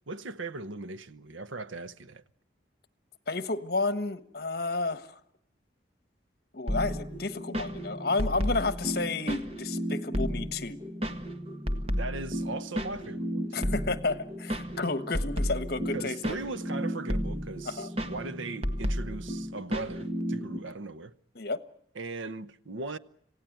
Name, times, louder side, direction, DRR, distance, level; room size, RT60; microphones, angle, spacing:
voice 1, 0.1-2.2 11.9-13.7 15.9-21.1 21.9-23.0, right 3 dB, 85° right, 0.9 m, -39 dB
voice 2, 3.3-5.2 6.5-10.8 13.5-16.4 17.6-17.9 21.3-21.6, left 3 dB, 50° left, 1.3 m, -31 dB
sound 1, 6.7-20.6, equal, 30° right, 1.7 m, -33 dB
27.0 x 17.0 x 9.2 m
head